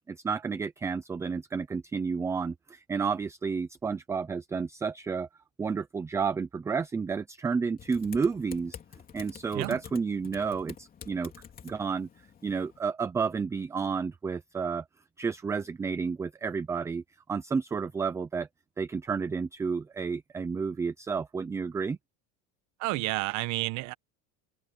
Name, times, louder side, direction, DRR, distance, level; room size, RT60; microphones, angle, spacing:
voice 1, 0.1-5.3 5.6-8.8 9.1-11.3 11.6-12.1 12.4-14.8 15.2-17.0 17.3-18.5 18.8-22.0, right 5 dB, 10° right, 0.3 m, -31 dB
Typing, 7.8-12.8, left 8 dB, 25° left, 3.4 m, -48 dB
voice 2, 22.8-23.9, right 20 dB, 55° right, 1.1 m, -30 dB
open air
cardioid pair, 165°, 35 cm